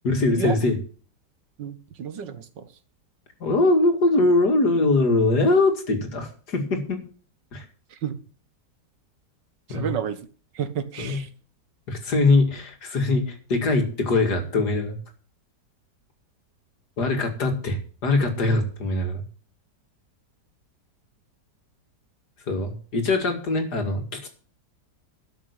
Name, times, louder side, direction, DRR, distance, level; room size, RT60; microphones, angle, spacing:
voice 1, 0.0-0.8 3.4-7.0 7.5-7.6 9.7-9.9 11.0-11.2 11.9-15.0 17.0-19.2 22.5-24.3, left 2 dB, 65° left, 5 dB, 2.8 m, -22 dB
voice 2, 1.6-2.7 7.9-8.2 9.7-10.2 10.6-11.3, right 8 dB, 85° right, 11 dB, 1.9 m, -30 dB
12.5 x 6.5 x 8.3 m, 0.40 s
omnidirectional pair, 1.9 m